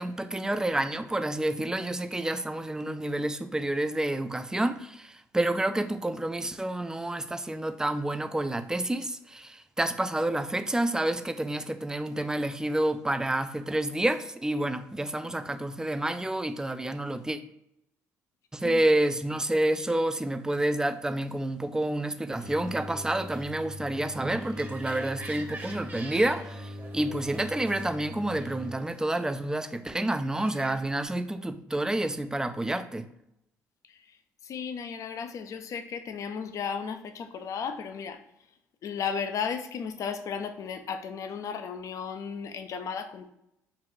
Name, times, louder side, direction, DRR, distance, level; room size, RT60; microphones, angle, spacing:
voice 1, 0.0-17.4 18.5-33.1, right 1 dB, 10° right, 10 dB, 0.4 m, -29 dB
sound 1, 22.4-28.7, left 1 dB, 70° right, 0.8 m, -42 dB
sound 2, 24.6-31.1, right 2 dB, 25° right, 1.0 m, -46 dB
voice 2, 34.4-38.2 38.8-43.3, left 6 dB, 55° left, 8 dB, 0.5 m, -35 dB
3.9 x 2.5 x 4.5 m, 0.80 s
supercardioid pair, 70°, 7 cm